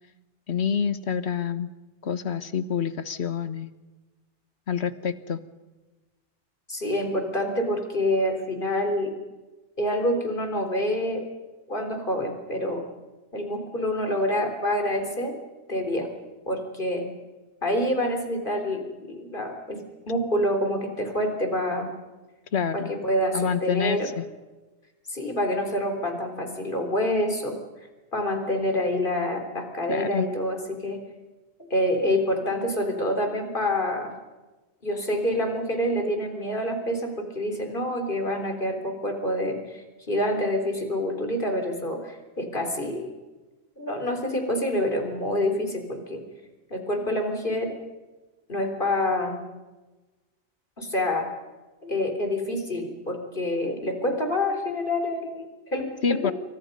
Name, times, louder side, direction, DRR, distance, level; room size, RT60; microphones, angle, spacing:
voice 1, 0.5-1.7 2.0-3.7 4.7-5.4 22.5-22.9 23.3-24.2 29.9-30.3 56.0-56.3, left 7 dB, 75° left, 12 dB, 1.5 m, -27 dB
voice 2, 6.7-9.1 9.8-11.3 11.7-12.8 13.3-15.4 15.7-16.1 16.5-17.1 17.6-21.9 22.7-24.1 25.1-27.6 28.1-31.1 31.7-34.1 34.8-43.1 43.8-46.3 46.7-47.7 48.5-49.4 50.8-51.3 51.8-56.3, left 1 dB, 50° left, 5 dB, 3.9 m, -27 dB
28.0 x 24.5 x 5.4 m, 1.2 s
omnidirectional pair, 1.1 m